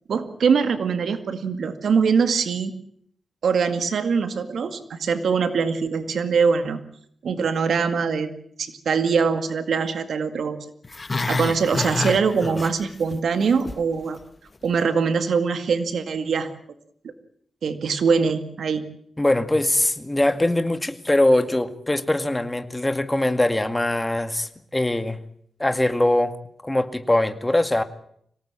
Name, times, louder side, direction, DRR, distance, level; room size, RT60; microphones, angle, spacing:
voice 1, 0.1-2.7 3.4-6.8 7.2-8.3 8.6-10.6 11.3-14.2 14.6-16.5 17.6-18.8, right 5 dB, 80° right, 9 dB, 2.0 m, -22 dB
Growling, 10.8-13.2 13.4-13.8 14.2-14.3, left 3 dB, 30° left, 1.4 m, -28 dB
voice 2, 19.2-25.2 25.6-26.4 26.6-27.8, left 1 dB, 15° left, 9 dB, 2.0 m, -22 dB
25.0 x 18.0 x 8.9 m, 0.69 s
cardioid pair, 85°, 0 cm